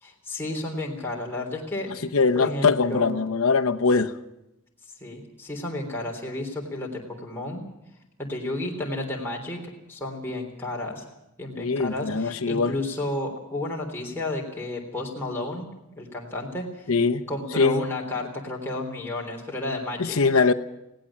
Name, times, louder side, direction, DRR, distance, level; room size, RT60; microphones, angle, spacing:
voice 1, 0.0-1.9 2.3-3.1 5.0-7.6 8.2-11.0 11.4-15.7 16.0-16.9 17.3-20.2, left 2 dB, 10° left, -2 dB, 3.5 m, -32 dB
voice 2, 2.1-4.2 11.5-12.7 16.9-17.2 17.6-17.8 20.0-20.5, left 4 dB, 85° left, 6 dB, 1.0 m, -22 dB
20.5 x 17.0 x 7.4 m, 0.89 s
head